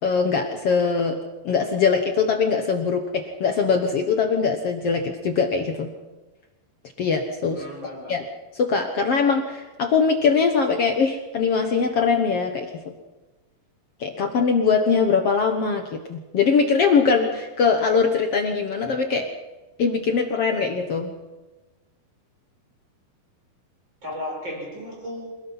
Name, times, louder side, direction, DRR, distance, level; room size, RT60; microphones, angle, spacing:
voice 1, 0.0-1.2 1.4-5.9 7.0-7.6 8.1-8.2 8.5-12.7 14.0-19.3 19.8-21.1, left 5 dB, 70° left, 1.4 m, -22 dB
voice 2, 7.5-8.2 24.0-25.3, left 1 dB, 25° right, 5.9 m, -35 dB
27.0 x 18.0 x 5.7 m
omnidirectional pair, 4.6 m